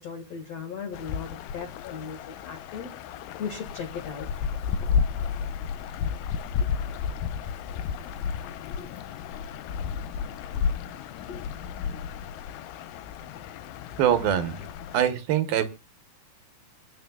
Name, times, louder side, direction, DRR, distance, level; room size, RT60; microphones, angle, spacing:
voice 1, 0.0-2.9 3.4-4.3 8.7-8.9 11.3-11.5, left 6 dB, 50° left, 3 dB, 2.2 m, -37 dB
sound 1, 0.9-15.0, left 6 dB, 75° left, 2.1 m, -32 dB
voice 2, 14.0-14.7 14.9-15.7, right 10 dB, 70° right, 10 dB, 2.8 m, -23 dB
25.5 x 9.0 x 2.3 m, 0.29 s
omnidirectional pair, 4.8 m